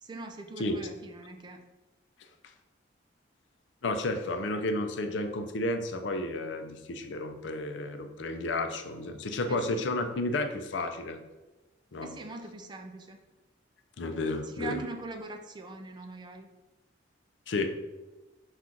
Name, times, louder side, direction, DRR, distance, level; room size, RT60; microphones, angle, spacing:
voice 1, 0.0-1.6 9.5-9.8 12.0-13.2 14.4-16.5, right 3 dB, 25° right, 4 dB, 0.4 m, -42 dB
voice 2, 3.8-11.2 11.9-12.1 14.0-14.8 17.5-17.7, left 2 dB, 75° left, 7 dB, 0.5 m, -32 dB
5.7 x 2.4 x 3.7 m, 1.1 s
head